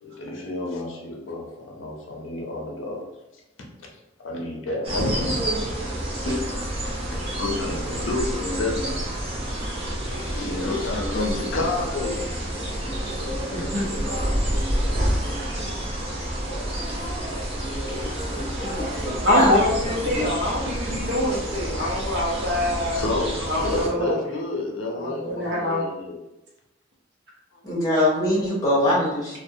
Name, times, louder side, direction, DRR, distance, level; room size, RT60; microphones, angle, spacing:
voice 1, 0.0-3.1 4.2-5.4 6.2-6.5 6.8-6.9 7.4-9.1 10.1-13.0 14.7-15.0 17.8-18.5 19.5-19.6 20.2-20.8 21.8-22.6 22.9-26.2 27.5-27.6, left 2 dB, 85° left, 0 dB, 0.5 m, -30 dB
sound 1, 4.8-23.9, right 1 dB, 30° right, 0.5 m, -29 dB
voice 2, 13.5-13.9 19.2-23.0 23.5-24.2 25.2-25.8, left 1 dB, 60° right, -5 dB, 0.7 m, -24 dB
voice 3, 18.6-19.5 20.1-20.3 27.6-29.4, left 1 dB, 15° left, -6 dB, 0.8 m, -23 dB
2.4 x 2.1 x 2.6 m, 0.94 s
head